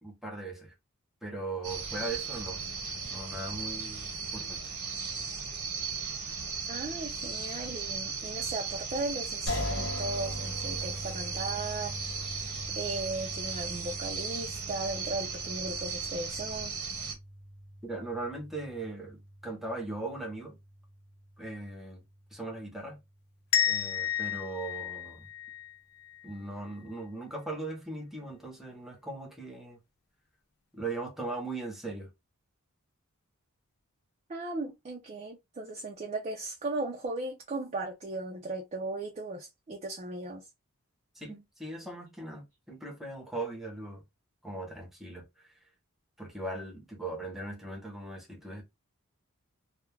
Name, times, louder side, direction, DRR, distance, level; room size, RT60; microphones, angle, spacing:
voice 1, 0.0-0.7 1.2-2.6 3.0-4.6 17.8-20.6 21.4-22.0 22.3-23.0 23.7-25.3 26.2-29.8 30.7-32.1 41.1-44.0 44.4-45.5 46.2-48.6, right 2 dB, ahead, 0.7 m, -39 dB
sound 1, 1.6-17.2, right 5 dB, 90° right, 0.9 m, -36 dB
voice 2, 6.7-12.0 12.8-16.8 34.3-40.4, right 2 dB, 30° right, 0.4 m, -37 dB
sound 2, 9.5-22.5, left 1 dB, 65° left, 0.8 m, -42 dB
sound 3, 23.5-26.3, left 10 dB, 45° left, 0.3 m, -31 dB
2.2 x 2.1 x 3.1 m
head